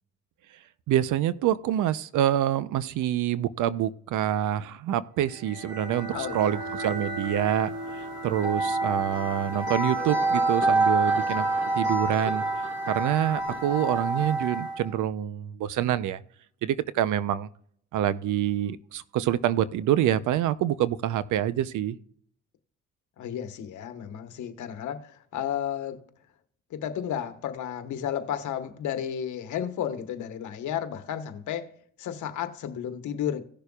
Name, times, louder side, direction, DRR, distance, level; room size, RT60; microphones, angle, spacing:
voice 1, 0.9-11.5 11.7-12.4 12.9-16.2 16.6-17.5 17.9-22.0, right 11 dB, 80° right, 0.7 m, -26 dB
sound 1, 5.4-14.8, right 2 dB, 55° right, 4.6 m, -28 dB
voice 2, 6.1-6.9 23.2-26.0 26.7-31.7 32.0-33.4, left 9 dB, 75° left, 1.3 m, -33 dB
17.5 x 6.8 x 2.4 m
cardioid pair, 90°, 30 cm